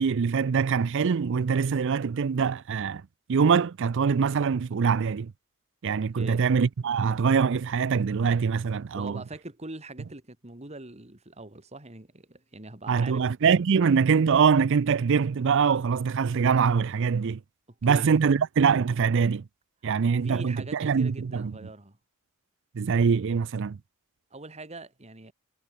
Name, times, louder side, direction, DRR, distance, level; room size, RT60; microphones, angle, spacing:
voice 1, 0.0-3.0 3.3-5.3 5.8-9.2 12.9-17.4 17.8-19.4 19.8-21.5 22.7-23.8, right 6 dB, 55° right, 0.4 m, -23 dB
voice 2, 6.1-6.5 8.9-13.3 17.8-18.1 20.2-22.0 24.3-25.3, right 2 dB, 30° right, 2.1 m, -42 dB
head